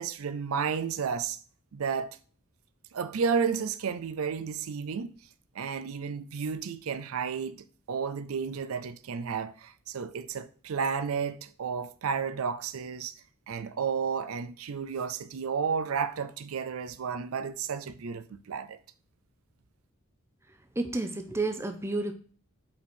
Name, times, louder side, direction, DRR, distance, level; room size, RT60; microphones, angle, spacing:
voice 1, 0.0-1.4 1.7-2.1 2.9-5.1 5.5-13.1 13.5-18.8, right 6 dB, 85° right, 0.5 m, -32 dB
voice 2, 20.8-22.1, right 2 dB, 10° right, 0.5 m, -30 dB
5.8 x 4.6 x 4.3 m
head